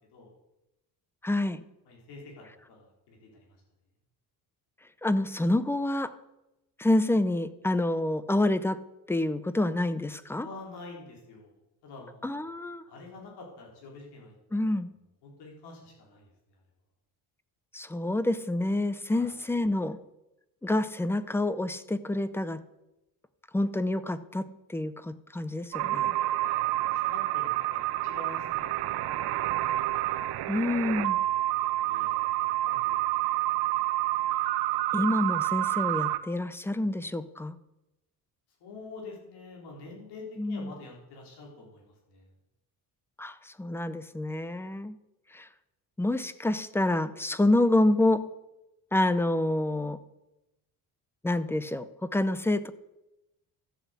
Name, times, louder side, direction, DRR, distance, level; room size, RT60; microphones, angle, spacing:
voice 1, 1.2-1.6 5.0-6.1 6.8-8.8 9.1-10.5 12.2-12.8 14.5-14.9 17.7-20.0 20.6-22.6 23.5-26.2 30.5-31.2 34.9-37.6 40.4-40.7 43.2-45.0 45.3-45.5 46.0-48.3 48.9-50.0 51.2-52.7, left 1 dB, 5° left, 15 dB, 0.6 m, -27 dB
voice 2, 1.9-3.5 10.4-11.5 11.8-12.4 12.9-14.4 15.2-16.3 19.1-19.3 26.4-29.2 29.5-29.7 31.2-31.3 31.6-32.9 38.6-42.3, left 3 dB, 85° left, -1 dB, 4.3 m, -47 dB
sound 1, 25.7-36.2, right 15 dB, 80° right, 1.0 m, -28 dB
13.5 x 8.3 x 8.2 m, 0.93 s
cardioid pair, 145°, 39 cm